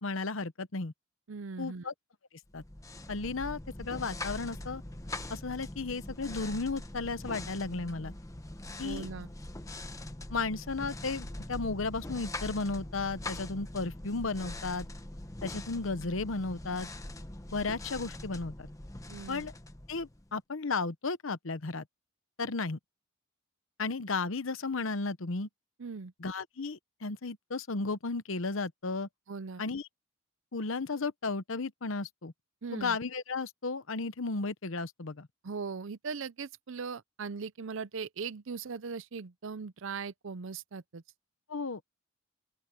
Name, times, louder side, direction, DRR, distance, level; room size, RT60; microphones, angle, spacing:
voice 1, 0.0-0.9 1.6-1.9 2.5-2.6 3.1-4.8 5.3-8.1 8.8-9.1 10.3-14.9 15.4-16.9 17.5-18.7 19.3-19.5 19.9-21.8 22.4-22.8 23.8-25.5 26.2-29.1 29.6-29.8 30.5-32.3 32.7-35.3 41.5-41.9, left 3 dB, 65° left, 0.9 m, -34 dB
voice 2, 1.3-1.9 8.8-9.3 19.1-19.5 25.8-26.1 29.3-29.6 32.6-33.0 35.4-41.0, right 5 dB, 65° right, 0.6 m, -39 dB
sound 1, 2.5-20.4, left 1 dB, 15° left, 0.9 m, -42 dB
open air
head